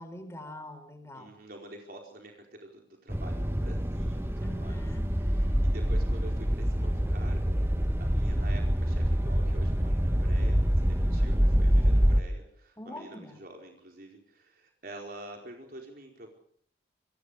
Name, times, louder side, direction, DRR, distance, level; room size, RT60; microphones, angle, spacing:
voice 1, 0.0-1.3 4.4-5.0 10.8-11.3 12.8-13.4, left 1 dB, 15° left, 8 dB, 5.0 m, -44 dB
voice 2, 1.1-4.8 5.3-7.6 8.0-16.3, right 1 dB, 50° right, 1 dB, 4.6 m, -47 dB
sound 1, 3.1-12.2, equal, 15° right, 1.2 m, -26 dB
29.0 x 25.0 x 5.1 m, 0.62 s
head